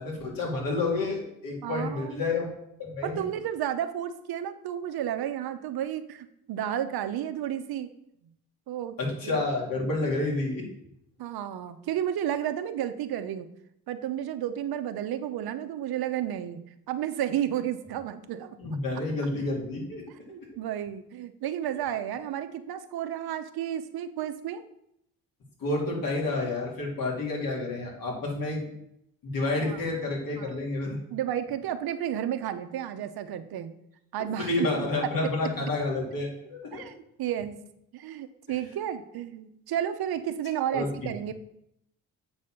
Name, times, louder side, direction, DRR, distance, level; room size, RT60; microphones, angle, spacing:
voice 1, 0.0-2.5 2.8-3.2 9.0-10.6 18.6-20.0 20.4-20.5 25.6-28.6 29.2-31.0 34.2-36.8 40.7-40.9, left 2 dB, 60° left, -1 dB, 3.1 m, -29 dB
voice 2, 1.6-2.3 3.0-7.9 8.7-9.0 9.2-9.4 9.8-9.9 11.2-13.5 13.9-16.6 16.9-18.6 20.3-24.6 29.6-29.8 30.4-30.6 31.1-33.7 34.1-34.9 36.7-37.6 37.9-41.3, right 10 dB, 70° right, 9 dB, 0.8 m, -32 dB
7.9 x 4.3 x 6.3 m, 0.77 s
cardioid pair, 80°, 38 cm